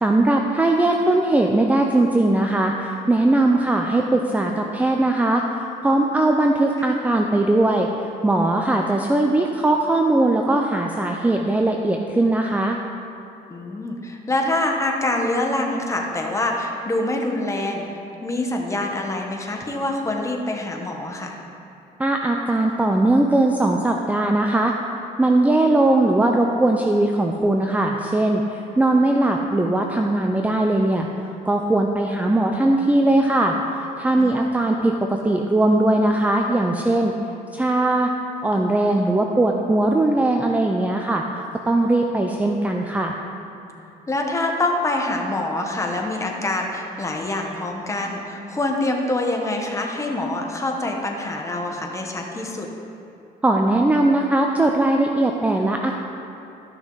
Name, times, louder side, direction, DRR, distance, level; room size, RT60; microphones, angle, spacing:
voice 1, 0.0-7.9 8.2-12.8 22.0-24.7 25.2-31.1 31.5-37.1 37.5-38.1 38.4-43.2 53.4-56.0, right 2 dB, 10° right, 2 dB, 0.5 m, -20 dB
voice 2, 13.5-21.4 34.2-34.5 43.7-52.7, left 2 dB, 15° left, 1 dB, 1.2 m, -25 dB
13.0 x 6.1 x 4.0 m, 2.8 s
cardioid pair, 110°, 17 cm